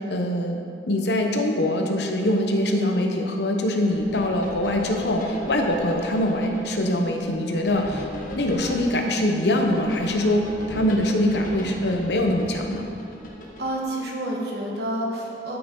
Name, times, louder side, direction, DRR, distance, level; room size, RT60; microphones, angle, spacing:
voice 1, 0.0-8.1 8.3-12.9, left 1 dB, 70° left, 3 dB, 1.0 m, -23 dB
sound 1, 3.8-13.8, left 1 dB, 45° left, 1.3 m, -38 dB
voice 2, 13.6-15.6, right 1 dB, 65° right, -2 dB, 1.6 m, -29 dB
12.5 x 5.9 x 3.9 m, 2.5 s
head